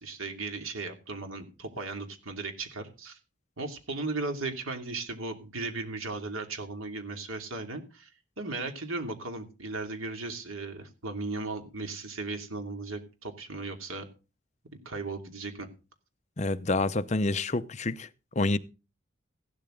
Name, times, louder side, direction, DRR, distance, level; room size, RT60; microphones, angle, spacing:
voice 1, 0.0-3.2 3.6-8.1 8.4-14.1 14.8-15.7, right 3 dB, 85° right, 2.7 m, -36 dB
voice 2, 16.4-18.1 18.4-18.6, left 2 dB, 35° left, 0.6 m, -27 dB
15.5 x 12.0 x 3.8 m
head